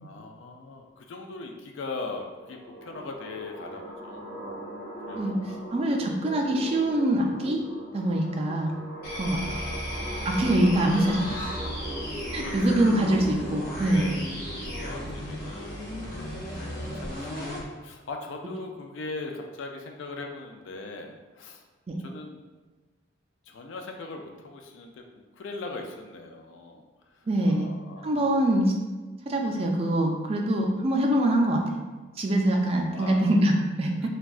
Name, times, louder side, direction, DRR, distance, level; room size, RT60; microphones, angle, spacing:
voice 1, 0.0-4.2 5.0-5.6 9.1-10.2 12.4-12.8 13.8-14.2 14.4-15.9 16.2-21.6 22.0-22.4 23.5-25.0 25.4-26.8 27.2-28.3 32.9-33.2 34.0-34.1, left 3 dB, 65° left, 3 dB, 0.3 m, -40 dB
sound 1, 2.4-15.4, right 1 dB, 5° left, 0.6 m, -39 dB
voice 2, 5.7-7.6 7.9-8.7 9.2-9.7 10.2-11.4 12.3-14.2 21.9-22.0 27.3-27.7 28.0-28.7 29.3-31.6 32.2-33.9, right 1 dB, 30° right, 1 dB, 0.3 m, -24 dB
sound 2, 9.0-17.7, equal, 45° left, 0.7 m, -35 dB
3.6 x 2.2 x 2.3 m, 1.2 s
head